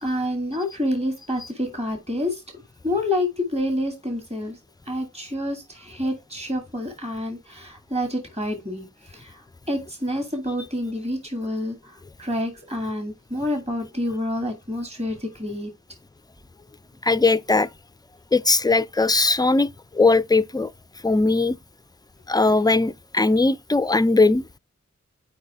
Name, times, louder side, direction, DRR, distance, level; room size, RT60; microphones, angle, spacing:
voice 1, 0.0-2.4 2.8-4.6 4.9-8.9 9.1-15.7, left 1 dB, 20° right, 2.1 m, -28 dB
voice 2, 17.0-17.7 18.3-19.7 19.9-20.7 21.0-21.6 22.3-24.6, left 3 dB, 15° left, 0.3 m, -19 dB
6.5 x 4.9 x 3.3 m
wide cardioid pair, 75°, 29 cm